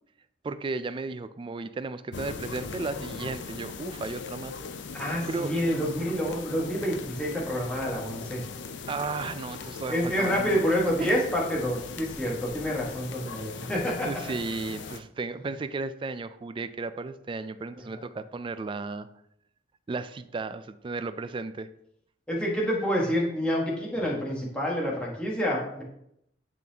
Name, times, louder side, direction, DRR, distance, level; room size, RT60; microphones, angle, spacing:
voice 1, 0.4-4.5 5.3-5.5 8.9-10.6 11.0-11.2 14.0-19.1 19.9-21.7, right 3 dB, 30° right, 13 dB, 0.3 m, -34 dB
sound 1, 2.1-15.0, left 5 dB, 75° left, 0.5 m, -40 dB
voice 2, 5.0-8.4 9.9-14.1 22.3-25.8, equal, 5° left, -4 dB, 1.4 m, -28 dB
10.5 x 4.0 x 2.8 m, 0.75 s
head